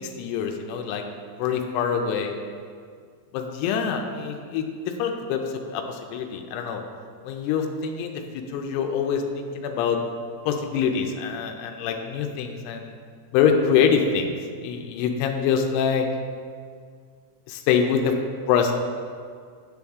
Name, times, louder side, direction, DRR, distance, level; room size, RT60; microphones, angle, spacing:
voice 1, 0.2-1.0 1.4-2.3 3.3-6.8 7.2-10.0 10.5-13.0 13.3-14.3 14.6-16.1 17.5-18.1 18.5-18.7, left 7 dB, 85° left, 4 dB, 2.7 m, -25 dB
9.7 x 7.0 x 3.5 m, 2.1 s
omnidirectional pair, 4.6 m